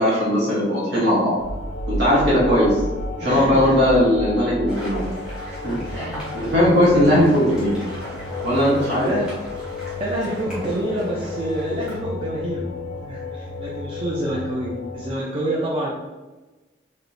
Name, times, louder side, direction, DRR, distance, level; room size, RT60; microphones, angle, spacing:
voice 1, 0.0-1.3 1.9-2.8 3.2-5.0 5.6-7.7 8.4-9.1, equal, 65° right, -7 dB, 0.9 m, -19 dB
sound 1, 1.4-15.1, left 2 dB, 85° left, 0.4 m, -32 dB
voice 2, 3.2-3.8 8.9-9.3 10.0-12.7 13.0-15.9, right 1 dB, 30° right, -4 dB, 0.3 m, -27 dB
sound 2, 4.7-12.0, equal, 5° right, 1.0 m, -39 dB
4.2 x 2.0 x 2.6 m, 1.2 s
head